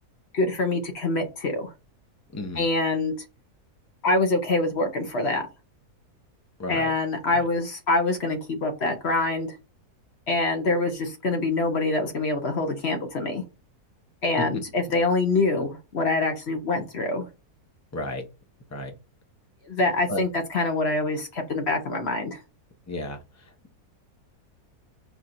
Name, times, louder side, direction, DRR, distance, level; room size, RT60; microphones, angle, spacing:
voice 1, 0.3-1.7 2.5-3.1 4.0-5.4 6.7-9.6 10.3-13.4 14.2-17.3 19.7-22.4, left 2 dB, 50° left, 5 dB, 1.0 m, -25 dB
voice 2, 2.3-2.7 6.6-6.9 7.3-7.4 17.9-18.2 18.7-18.9 20.1-20.2 22.9-23.2, left 2 dB, 25° left, 4 dB, 0.3 m, -32 dB
4.9 x 2.5 x 4.2 m, 0.28 s
omnidirectional pair, 1.6 m